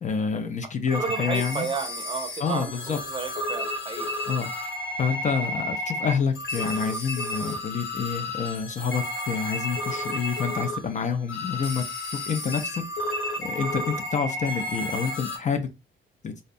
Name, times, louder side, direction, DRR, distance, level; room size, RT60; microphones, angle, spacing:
voice 1, 0.0-1.7 2.4-3.0 4.3-4.5 5.0-11.8 12.1-12.8 13.4-15.7 16.2-16.3, left 6 dB, 40° left, 0.4 m, -28 dB
sound 1, 0.9-15.4, left 1 dB, 75° left, 1.1 m, -32 dB
voice 2, 1.0-4.1, right 5 dB, 25° right, 0.6 m, -32 dB
2.5 x 2.1 x 2.6 m
cardioid pair, 90°, 20 cm